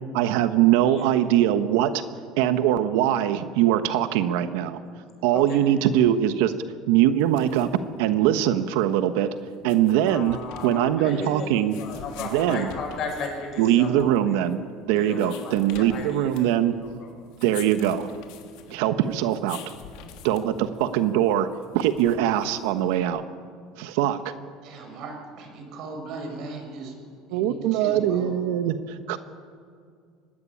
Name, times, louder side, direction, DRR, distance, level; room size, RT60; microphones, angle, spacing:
voice 1, 0.1-2.0 2.4-4.8 5.2-6.5 6.9-7.7 8.0-9.3 9.6-11.8 12.3-12.7 13.6-14.6 14.9-16.8 17.4-18.1 18.7-19.6 20.2-21.5 21.7-23.2 23.8-24.3 27.3-29.2, right 11 dB, 80° right, 10 dB, 1.2 m, -22 dB
sound 1, 7.1-23.0, left 8 dB, 70° left, 3.1 m, -47 dB
voice 2, 10.1-14.5 15.0-17.1 18.7-18.8, left 4 dB, 40° left, 1 dB, 7.5 m, -36 dB
voice 3, 24.6-26.9 27.3-28.3, right 3 dB, 50° right, 4 dB, 5.9 m, -38 dB
24.0 x 17.5 x 9.9 m, 2.2 s
cardioid pair, 155°, 0 cm